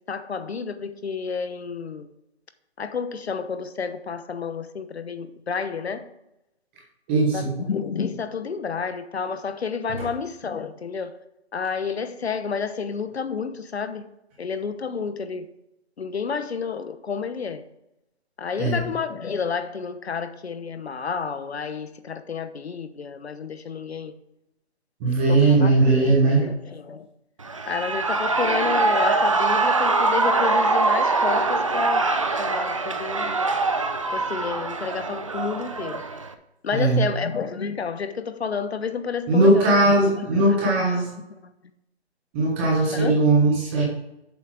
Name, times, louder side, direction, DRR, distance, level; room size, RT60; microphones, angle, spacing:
voice 1, 0.1-2.1 2.8-6.0 7.3-11.2 11.5-14.1 14.4-15.5 16.0-17.6 18.4-24.1 25.3-27.1 27.7-32.0 32.4-33.4 34.1-36.0 36.6-41.4 42.9-43.2, left 5 dB, 70° left, 1.0 m, -30 dB
voice 2, 7.1-7.5 18.6-18.8 25.0-26.5 36.7-37.1 39.3-41.1 42.3-43.8, right 2 dB, 10° right, 1.1 m, -19 dB
Shout / Cheering, 27.4-36.3, right 3 dB, 30° right, 0.5 m, -23 dB
7.6 x 5.7 x 4.9 m
hypercardioid pair, 165°, 33 cm